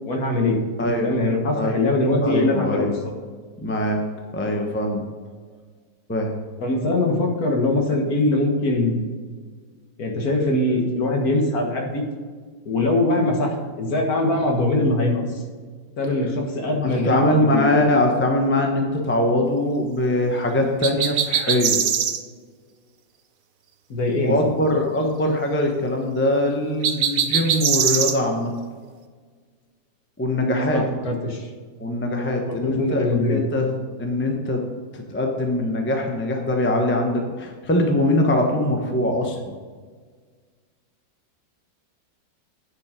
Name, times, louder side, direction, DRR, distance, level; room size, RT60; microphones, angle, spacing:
voice 1, 0.1-0.6 1.0-2.9 6.6-9.0 10.0-12.0 12.7-15.4 16.0-17.8 23.9-24.6 30.7-31.5 32.5-33.4, left 2 dB, 55° left, 1 dB, 1.8 m, -22 dB
voice 2, 0.8-1.2 1.5-1.8 2.2-3.0 3.6-5.0 6.1-6.4 16.8-21.8 24.2-28.5 30.2-30.8 31.8-33.7 34.0-34.6 34.9-39.4, left 1 dB, 10° left, 2 dB, 0.7 m, -22 dB
sound 1, 20.8-22.2 26.8-28.2, right 8 dB, 60° right, 0.9 m, -21 dB
9.7 x 6.4 x 5.0 m, 1.6 s
omnidirectional pair, 2.0 m